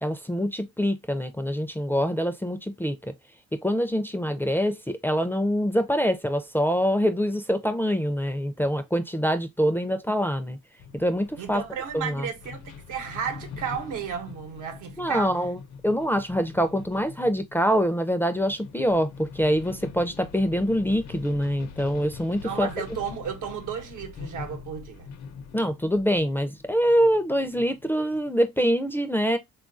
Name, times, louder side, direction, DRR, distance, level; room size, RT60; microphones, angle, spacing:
voice 1, 0.0-3.1 3.5-10.6 10.9-11.6 11.9-12.3 15.0-15.6 15.8-22.7 25.5-29.4, equal, 5° left, 0.4 m, -25 dB
sound 1, 10.8-28.3, left 6 dB, 65° left, 0.6 m, -44 dB
voice 2, 11.4-15.4 22.4-25.1, right 7 dB, 85° right, 0.9 m, -33 dB
3.6 x 2.4 x 2.4 m
cardioid pair, 90°, 30 cm